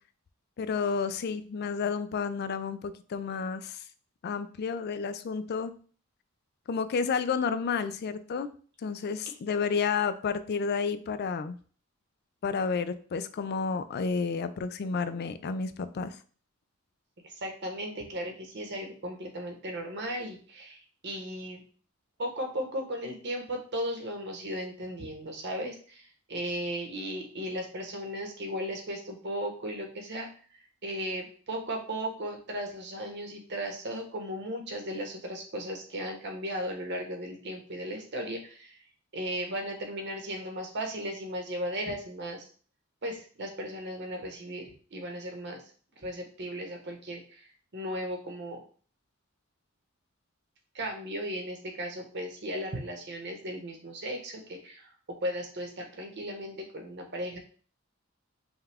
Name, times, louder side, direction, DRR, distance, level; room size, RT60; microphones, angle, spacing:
voice 1, 0.6-3.8 4.2-5.7 6.7-8.5 8.8-11.6 12.4-16.2, left 5 dB, 50° left, 12 dB, 0.4 m, -31 dB
voice 2, 17.2-21.6 22.2-30.3 30.8-38.8 39.1-42.5 43.0-45.6 46.0-47.4 47.7-48.6 50.7-54.9 55.2-57.4, equal, 55° right, 3 dB, 1.1 m, -36 dB
5.4 x 2.3 x 3.4 m, 0.42 s
head